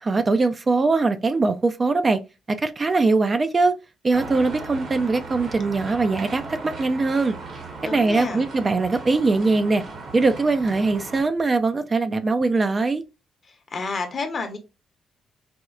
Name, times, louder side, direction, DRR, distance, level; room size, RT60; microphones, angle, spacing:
voice 1, 0.0-2.2 2.5-3.8 4.0-7.4 7.9-9.8 10.1-13.0, right 3 dB, 30° right, 0.3 m, -21 dB
sound 1, 4.1-11.2, right 3 dB, 60° right, 1.1 m, -37 dB
voice 2, 7.8-8.4 13.5-14.6, left 4 dB, 45° left, 0.8 m, -30 dB
4.2 x 2.1 x 2.3 m
cardioid pair, 90°, 0 cm